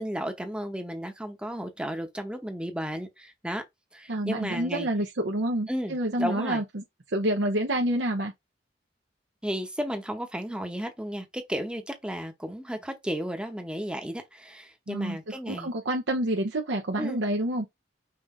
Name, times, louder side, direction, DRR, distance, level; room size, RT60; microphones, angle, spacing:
voice 1, 0.0-3.6 3.9-4.9 5.7-6.6 9.4-15.7 17.0-17.2, equal, 5° right, 0.8 m, -33 dB
voice 2, 4.1-8.3 14.9-17.7, right 1 dB, 85° right, 0.8 m, -28 dB
5.7 x 2.6 x 3.6 m
head